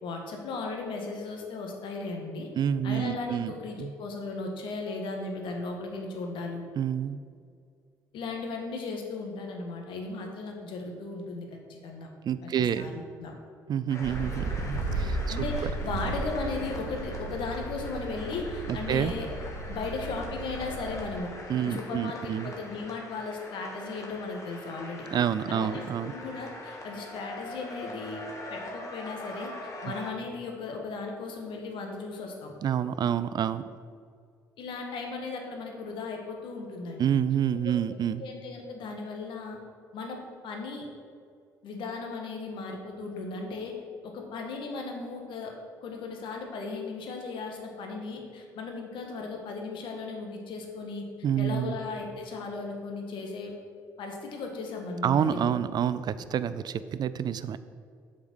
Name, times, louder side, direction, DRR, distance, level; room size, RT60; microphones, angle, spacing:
voice 1, 0.0-2.5 2.8-6.7 8.1-12.1 12.4-13.3 15.3-19.4 19.7-21.3 21.6-25.1 25.5-28.2 28.5-29.5 29.8-32.5 34.6-37.1 37.5-37.6 38.2-39.6 39.9-40.9 41.6-43.7 44.0-45.5 45.8-51.0 51.4-53.6 54.0-55.6, left 3 dB, 65° left, 2 dB, 1.6 m, -36 dB
voice 2, 2.6-3.5 3.8-3.9 6.8-7.2 12.2-12.9 13.7-15.4 18.7-19.1 21.5-22.5 25.1-26.1 32.6-33.7 37.0-38.2 51.2-51.8 55.0-57.6, right 9 dB, 50° right, 14 dB, 0.5 m, -28 dB
sound 1, 13.9-30.1, left 2 dB, 35° left, 2.0 m, -43 dB
sound 2, 14.0-21.2, right 2 dB, 85° right, 0.9 m, -35 dB
8.1 x 5.2 x 6.2 m, 2.2 s
hypercardioid pair, 55°, 9 cm